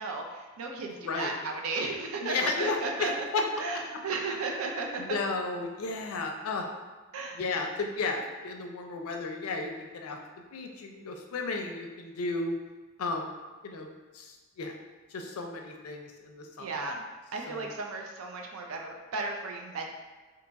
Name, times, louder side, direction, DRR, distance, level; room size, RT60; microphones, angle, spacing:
voice 1, 0.0-3.2 3.6-5.2 7.1-7.4 16.6-17.0 17.3-19.9, right 3 dB, 75° right, 2 dB, 0.4 m, -34 dB
voice 2, 0.9-1.3 2.2-3.5 5.0-6.7 7.3-10.2 10.5-12.6 13.0-13.4 13.6-13.9 14.1-14.7 15.1-16.7 17.5-17.7, left 3 dB, 90° left, 3 dB, 0.4 m, -33 dB
2.8 x 2.3 x 3.9 m, 1.3 s
head